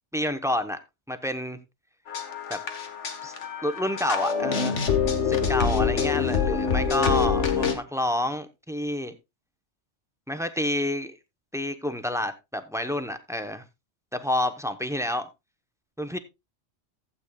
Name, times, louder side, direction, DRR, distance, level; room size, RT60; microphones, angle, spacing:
voice 1, 0.1-0.8 1.1-1.6 2.5-2.6 3.2-3.3 3.6-4.9 5.2-9.2 10.3-11.2 11.5-13.6 14.1-15.3 16.0-16.2, left 1 dB, 5° right, 0.7 m, -29 dB
sound 1, 2.1-7.7, left 6 dB, 80° left, 1.6 m, -25 dB
15.5 x 8.3 x 2.3 m
omnidirectional pair, 1.2 m